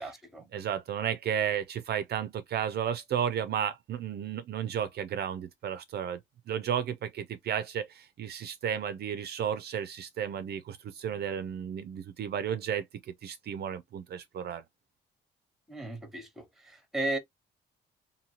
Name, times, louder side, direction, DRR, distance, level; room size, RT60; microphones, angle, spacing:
voice 1, 0.0-0.4 15.7-17.2, right 2 dB, ahead, 1.0 m, -35 dB
voice 2, 0.5-6.2 6.5-14.6, right 8 dB, 55° right, 0.4 m, -33 dB
2.8 x 2.7 x 2.8 m
cardioid pair, 90°, 20 cm